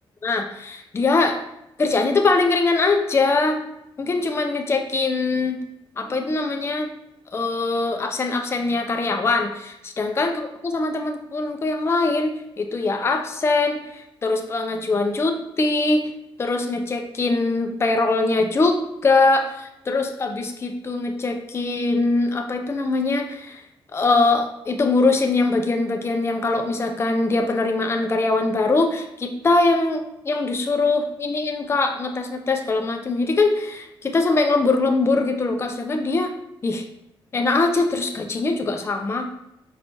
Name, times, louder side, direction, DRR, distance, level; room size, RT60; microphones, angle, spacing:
voice 1, 0.2-1.4 1.8-3.6 4.0-5.6 6.0-6.9 7.3-13.8 14.2-16.0 16.4-23.6 23.9-36.3 36.6-36.8 37.3-39.3, left 3 dB, 30° left, 4 dB, 0.4 m, -22 dB
4.5 x 3.2 x 2.6 m, 0.83 s
cardioid pair, 100°, 9 cm